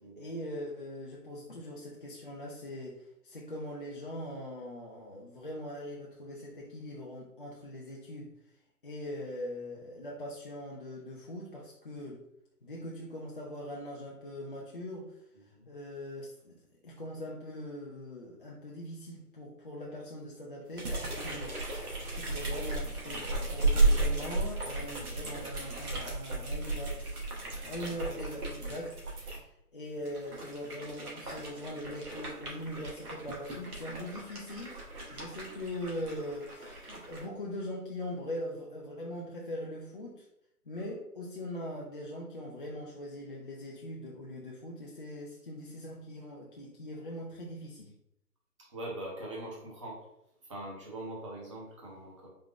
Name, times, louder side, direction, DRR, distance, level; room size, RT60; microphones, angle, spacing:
voice 1, 0.2-8.3 8.8-12.2 12.6-15.2 15.7-34.8 35.1-40.3 40.7-48.0, left 1 dB, 40° left, -4 dB, 0.4 m, -41 dB
sound 1, 20.8-29.4 30.0-37.3, right 2 dB, 70° right, 1.3 m, -34 dB
voice 2, 48.7-50.1 50.4-52.3, right 1 dB, 20° right, -2 dB, 0.6 m, -42 dB
3.7 x 2.2 x 3.7 m, 0.82 s
figure-of-eight pair, 140°, 46 cm